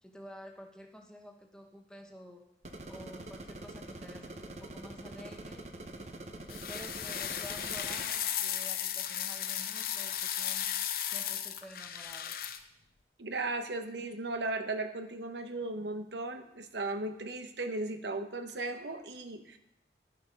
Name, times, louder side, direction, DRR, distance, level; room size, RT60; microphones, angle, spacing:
voice 1, 0.0-2.4 2.9-5.7 6.5-10.7 11.1-12.5, equal, 5° left, 2 dB, 1.0 m, -50 dB
sound 1, 2.6-8.1, right 2 dB, 40° right, 0.8 m, -45 dB
sound 2, 6.5-12.6, left 10 dB, 55° left, 0.6 m, -35 dB
voice 2, 13.2-19.6, right 2 dB, 80° right, 8 dB, 0.9 m, -36 dB
11.0 x 6.8 x 5.3 m, 0.78 s
head